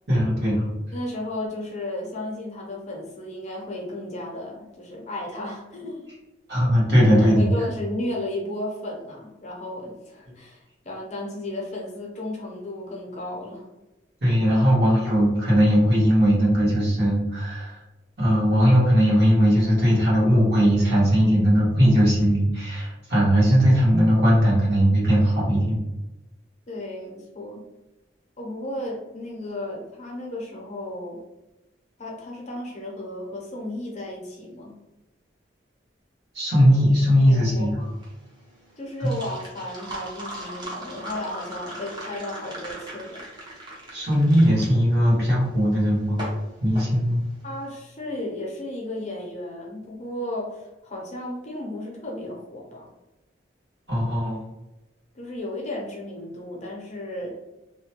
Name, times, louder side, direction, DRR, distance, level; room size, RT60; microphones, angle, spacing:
voice 1, 0.1-0.7 6.5-7.5 14.2-17.8 18.2-25.8 36.3-37.8 39.0-39.1 43.9-46.2 46.6-47.2 53.9-54.4, equal, 60° right, -7 dB, 1.4 m, -19 dB
voice 2, 0.9-6.1 7.1-10.6 10.8-13.7 26.7-27.6 28.4-31.2 32.0-34.7 37.3-37.9 38.8-43.2 47.4-52.9 55.1-57.3, left 1 dB, 35° left, -2 dB, 0.6 m, -34 dB
sound 1, 37.8-47.7, right 1 dB, 25° right, 0.6 m, -39 dB
2.8 x 2.2 x 2.9 m, 1.0 s
head